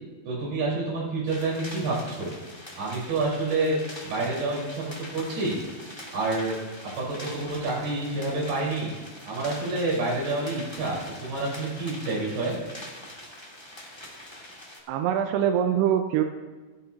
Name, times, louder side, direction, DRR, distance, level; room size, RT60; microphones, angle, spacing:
voice 1, 0.3-2.3 2.8-3.8 4.0-5.6 6.1-6.6 7.0-8.9 9.2-12.5, right 2 dB, 60° right, -5 dB, 6.3 m, -28 dB
sound 1, 1.3-14.8, left 1 dB, 15° left, 0.8 m, -43 dB
voice 2, 14.9-16.2, right 9 dB, 80° right, 6 dB, 2.6 m, -23 dB
27.0 x 11.0 x 2.9 m, 1.3 s
omnidirectional pair, 5.2 m